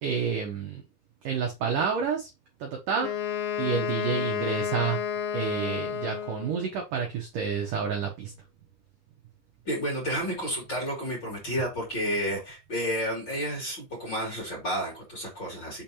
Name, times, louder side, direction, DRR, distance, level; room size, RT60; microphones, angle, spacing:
voice 1, 0.0-0.8 1.2-2.3 2.6-3.1 3.6-5.0 5.3-8.3, right 6 dB, 70° right, 2.0 m, -29 dB
Wind instrument woodwind instrument, 3.0-6.7, left 8 dB, 80° left, 2.9 m, -31 dB
voice 2, 9.6-15.8, equal, 30° left, 2.7 m, -31 dB
6.6 x 5.2 x 2.9 m
omnidirectional pair, 5.3 m